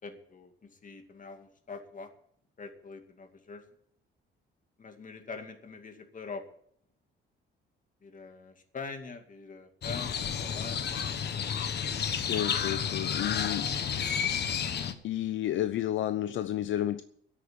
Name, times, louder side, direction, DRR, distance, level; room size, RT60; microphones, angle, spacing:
voice 1, 0.0-2.1 2.6-3.6 4.8-6.4 8.0-11.0 14.1-14.4, left 4 dB, 40° left, 2.3 m, -44 dB
Crow, 9.8-14.9, left 7 dB, 55° left, 1.3 m, -31 dB
voice 2, 12.2-13.7 15.0-17.0, left 12 dB, 75° left, 0.7 m, -31 dB
10.0 x 8.9 x 9.5 m
cardioid pair, 90°, 20 cm